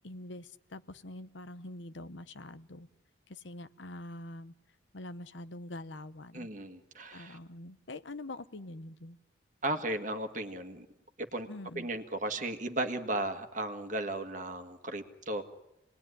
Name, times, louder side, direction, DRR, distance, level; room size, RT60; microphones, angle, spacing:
voice 1, 0.0-2.9 3.3-4.5 4.9-6.5 7.1-9.2 11.5-11.9, left 2 dB, 75° left, 12 dB, 1.0 m, -45 dB
voice 2, 6.3-7.4 9.6-10.9 11.2-11.5 11.7-15.4, right 2 dB, 40° right, 6 dB, 1.7 m, -35 dB
27.5 x 20.0 x 10.0 m, 0.89 s
head